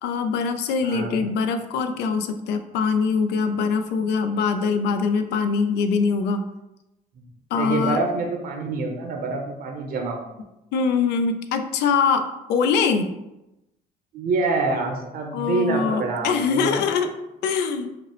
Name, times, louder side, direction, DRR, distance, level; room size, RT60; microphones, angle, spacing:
voice 1, 0.0-6.5 7.5-8.0 10.7-13.1 15.3-17.1 17.4-17.9, left 5 dB, 85° left, 8 dB, 0.4 m, -23 dB
voice 2, 0.8-1.3 7.1-7.2 7.5-10.3 14.1-16.8, right 3 dB, 60° right, 2 dB, 0.7 m, -26 dB
5.0 x 2.0 x 3.0 m, 0.94 s
cardioid pair, 110°, 17 cm